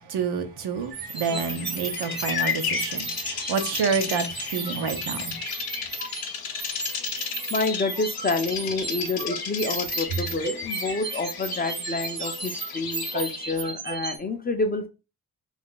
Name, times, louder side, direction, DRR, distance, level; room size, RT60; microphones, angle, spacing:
voice 1, 0.1-5.4, right 5 dB, 85° right, 0.6 m, -28 dB
sound 1, 0.9-14.2, right 4 dB, 30° right, 0.5 m, -35 dB
Bird vocalization bird call bird song, 1.0-13.7, left 6 dB, 65° left, 0.6 m, -33 dB
voice 2, 7.5-14.9, left 3 dB, 25° left, 0.4 m, -28 dB
2.4 x 2.3 x 3.6 m
wide cardioid pair, 140°, 39 cm